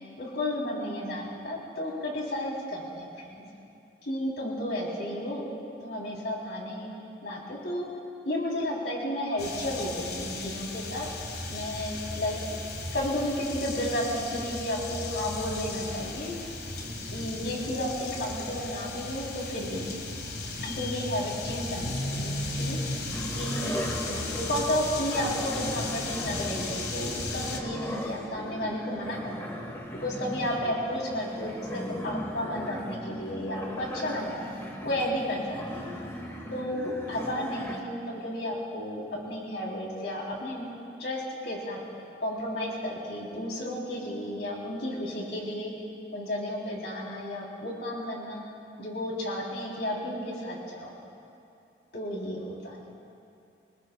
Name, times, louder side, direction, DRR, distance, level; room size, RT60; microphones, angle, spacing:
voice 1, 0.2-3.4 4.1-5.5 5.8-6.9 7.2-7.9 8.2-11.1 11.5-12.4 12.9-16.4 17.1-19.8 20.6-22.8 23.3-23.7 24.0-29.4 29.9-34.4 34.8-36.0 36.5-40.7 41.0-41.8 42.2-45.7 46.1-48.4 48.8-50.9 51.9-52.8, left 1 dB, 80° left, -3 dB, 3.4 m, -32 dB
sound 1, 9.4-27.6, left 2 dB, 60° left, 1.6 m, -35 dB
sound 2, 23.1-37.8, equal, 15° left, 1.2 m, -38 dB
27.0 x 20.0 x 2.3 m, 2.7 s
head